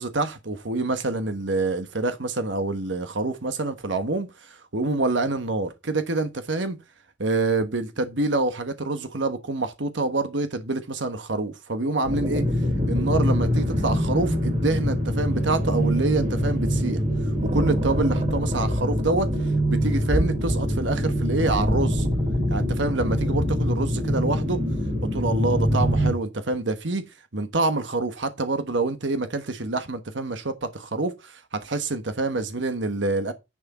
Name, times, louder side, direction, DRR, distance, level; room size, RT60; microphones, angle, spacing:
voice 1, 0.0-6.8 7.2-12.5 12.9-17.0 17.5-22.1 22.5-24.6 25.1-33.3, right 2 dB, 70° right, 1.2 m, -26 dB
sound 1, 12.0-26.1, equal, 40° right, 3.2 m, -24 dB
10.5 x 6.1 x 4.2 m
head